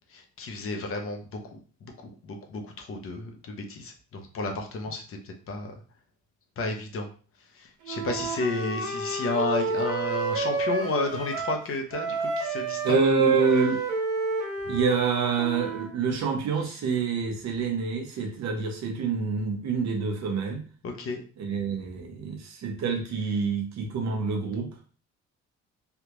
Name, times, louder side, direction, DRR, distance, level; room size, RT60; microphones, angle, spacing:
voice 1, 0.1-5.7 6.6-7.1 7.5-13.0 20.8-21.2, left 3 dB, 45° left, 3 dB, 0.8 m, -32 dB
Wind instrument woodwind instrument, 7.8-11.7 11.9-15.9, right 4 dB, 90° right, 0.9 m, -29 dB
voice 2, 12.8-13.8 14.7-20.6 21.4-24.7, right 4 dB, 60° right, 3 dB, 0.9 m, -27 dB
3.4 x 2.4 x 3.0 m, 0.39 s
cardioid pair, 125°, 30 cm